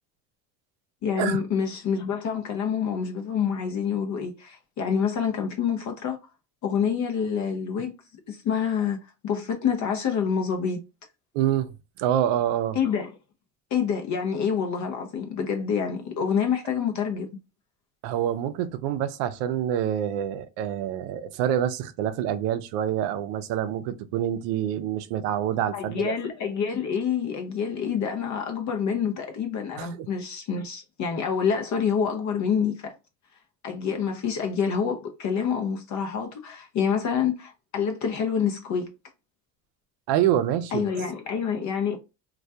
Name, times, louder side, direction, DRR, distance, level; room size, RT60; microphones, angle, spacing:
voice 1, 1.0-6.2 6.6-7.9 8.3-9.0 9.2-10.8 12.8-13.1 13.7-17.3 25.7-32.9 33.6-38.9 40.7-42.0, left 7 dB, 40° left, 0.5 m, -27 dB
voice 2, 11.3-12.8 18.0-26.1 29.8-30.1 40.1-40.9, right 10 dB, 75° right, 0.5 m, -26 dB
2.3 x 2.2 x 2.6 m
supercardioid pair, 95°, 43 cm